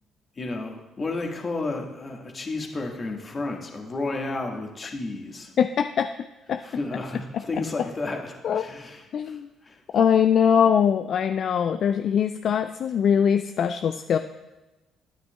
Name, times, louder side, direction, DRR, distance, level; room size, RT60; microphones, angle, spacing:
voice 1, 0.4-5.5 6.6-9.8, left 2 dB, 35° left, 2 dB, 1.6 m, -32 dB
voice 2, 5.6-6.1 6.5-6.6 8.4-8.6 9.1-9.5 9.9-14.2, left 8 dB, 55° left, 9 dB, 0.3 m, -22 dB
12.5 x 9.2 x 2.2 m, 1.1 s
hypercardioid pair, 45°, 0 cm